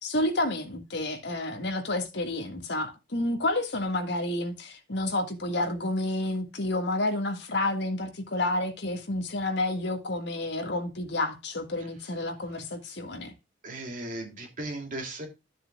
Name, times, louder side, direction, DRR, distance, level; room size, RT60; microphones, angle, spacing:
voice 1, 0.0-13.3, left 2 dB, 65° left, 1.8 m, -30 dB
voice 2, 13.6-15.3, right 1 dB, 45° right, 2.8 m, -36 dB
12.5 x 7.2 x 2.3 m
head